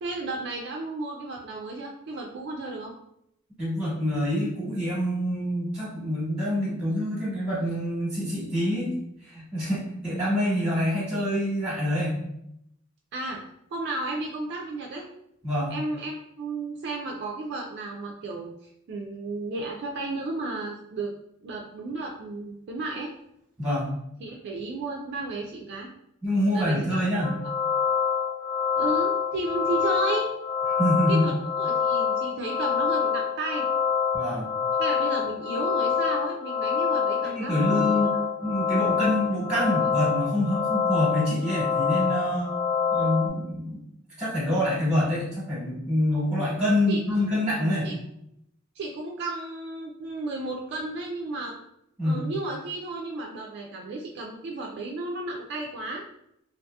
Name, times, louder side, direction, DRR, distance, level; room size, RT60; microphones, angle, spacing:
voice 1, 0.0-2.9 13.1-13.4 13.7-15.1 15.7-18.5 18.9-21.1 21.4-23.1 24.2-25.9 26.5-27.0 28.8-30.3 31.1-33.7 34.8-38.1 46.9-47.9 48.8-51.6 52.0-56.0, right 2 dB, 55° right, 0 dB, 0.3 m, -33 dB
voice 2, 3.6-8.9 9.2-12.2 15.4-15.7 23.6-23.9 26.2-27.3 30.8-31.3 34.1-34.5 37.3-38.1 38.4-42.5 42.9-43.8 44.2-47.9 52.0-52.2, left 1 dB, 5° right, -8 dB, 1.0 m, -26 dB
sound 1, 27.2-43.3, left 7 dB, 35° left, 1.1 m, -26 dB
2.7 x 2.4 x 2.2 m, 0.77 s
head